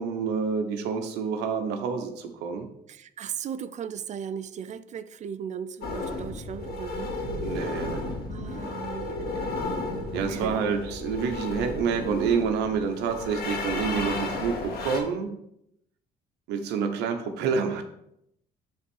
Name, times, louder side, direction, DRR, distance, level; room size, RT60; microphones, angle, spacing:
voice 1, 0.0-2.7 7.4-8.0 10.1-15.3 16.5-17.8, right 6 dB, 90° right, 6 dB, 1.1 m, -28 dB
voice 2, 2.9-7.1 7.5-7.7 8.3-9.7 10.1-10.6, right 8 dB, 45° right, 13 dB, 0.5 m, -37 dB
sound 1, 5.8-15.0, left 2 dB, 65° left, 1.7 m, -33 dB
7.1 x 3.9 x 5.5 m, 0.77 s
cardioid pair, 110°, 17 cm